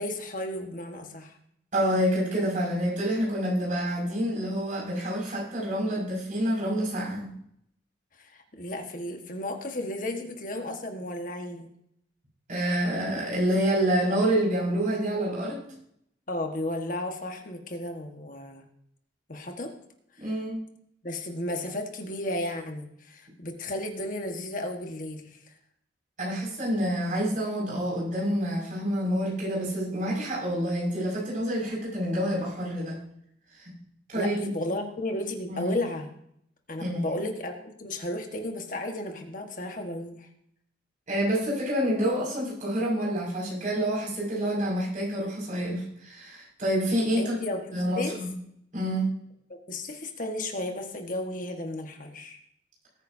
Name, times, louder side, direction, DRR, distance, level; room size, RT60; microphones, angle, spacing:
voice 1, 0.0-1.4 8.2-11.7 16.3-18.6 19.3-19.7 20.2-20.4 21.0-25.4 34.1-36.1 36.7-40.3 47.1-48.1 49.5-52.4, left 1 dB, 45° left, 4 dB, 1.5 m, -34 dB
voice 2, 1.7-7.3 12.5-15.6 20.2-20.6 26.2-33.0 33.5-33.8 34.1-34.5 35.5-35.8 36.8-37.2 41.1-47.4 47.7-48.3 48.7-49.1, equal, 45° right, -4 dB, 6.0 m, -27 dB
19.5 x 9.6 x 2.8 m, 0.71 s
head